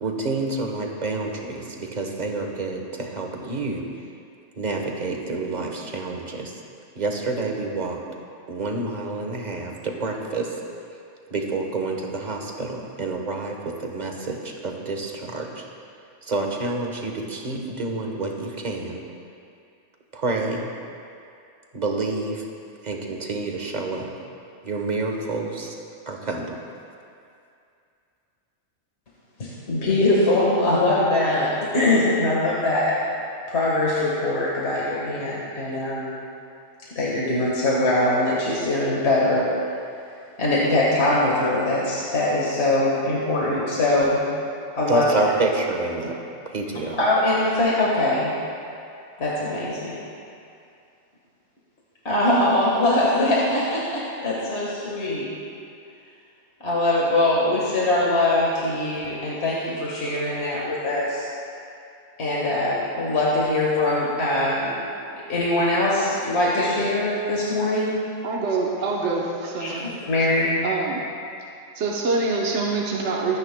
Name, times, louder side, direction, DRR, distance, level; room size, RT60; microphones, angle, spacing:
voice 1, 0.0-3.8 4.6-6.5 6.9-8.0 8.5-10.6 11.3-15.6 16.2-19.0 20.1-20.7 21.7-22.4 22.8-24.1 24.6-25.7 26.1-26.6 44.9-46.2 46.5-47.0, right 3 dB, 35° right, 1 dB, 1.2 m, -28 dB
voice 2, 29.4-33.0 33.5-36.2 37.0-39.5 40.4-44.2 44.8-45.3 47.0-48.3 49.2-50.0 52.1-55.3 56.6-61.3 62.2-64.8 65.1-68.0 69.6-70.6, left 1 dB, 55° left, -5 dB, 1.8 m, -22 dB
voice 3, 68.2-69.8 70.6-71.0 71.7-73.4, right 3 dB, 65° right, -2 dB, 1.3 m, -25 dB
25.5 x 9.5 x 2.2 m, 2.5 s
omnidirectional pair, 1.3 m